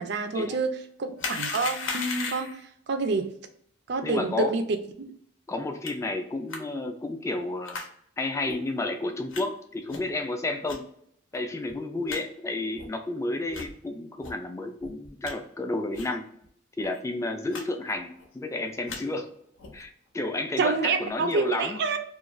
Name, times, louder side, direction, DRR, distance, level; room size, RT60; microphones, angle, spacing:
voice 1, 0.0-2.6 2.9-3.3 3.9-4.6 5.0-5.1 20.6-22.0, right 4 dB, 60° right, 7 dB, 0.4 m, -27 dB
sound 1, 1.2-2.6 5.9-6.0 6.5-6.6 7.7-7.9 8.5-8.6 9.3-9.4 9.9-10.2 10.7-10.8 11.3-11.4 11.7-11.8 12.1-12.2 12.8-12.9 13.5-13.7 14.2-14.3 14.8-15.3 15.9-16.2 16.4-16.5 16.8-17.0 17.5-17.6 17.9-18.3 18.7-19.0 19.6-19.8, left 4 dB, 80° left, 0.6 m, -36 dB
voice 2, 4.0-4.6 5.5-7.8 8.2-10.8 11.3-16.3 16.8-19.3 19.7-21.8, left 2 dB, 15° left, 5 dB, 0.3 m, -31 dB
2.4 x 2.2 x 3.0 m, 0.67 s
head